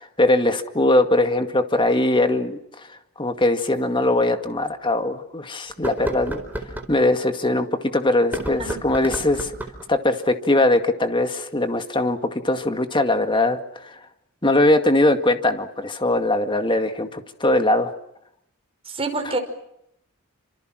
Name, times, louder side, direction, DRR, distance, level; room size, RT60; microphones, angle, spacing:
voice 1, 0.0-2.6 3.2-6.4 6.9-7.7 7.9-9.5 9.9-14.0 14.4-17.9, left 2 dB, 20° left, 8 dB, 2.1 m, -21 dB
sound 1, 3.7-3.8 4.4-4.5 5.7-6.9 8.2-9.9, right 1 dB, 10° right, 4.5 m, -31 dB
voice 2, 18.9-19.4, right 3 dB, 25° right, 5 dB, 5.2 m, -26 dB
29.5 x 26.5 x 6.4 m, 0.78 s
head